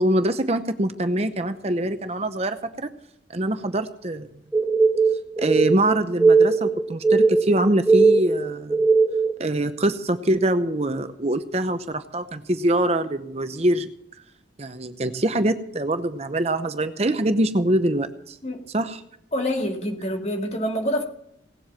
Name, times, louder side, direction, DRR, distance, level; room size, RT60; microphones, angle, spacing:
voice 1, 0.0-2.9 3.3-4.3 5.4-8.8 9.4-13.9 14.6-18.4 18.7-19.0, right 1 dB, 35° right, 9 dB, 0.7 m, -24 dB
sound 1, 4.5-9.4, right 4 dB, 5° right, 1.4 m, -19 dB
voice 2, 19.3-21.0, equal, 35° left, 2 dB, 2.4 m, -26 dB
18.0 x 7.8 x 7.4 m, 0.73 s
head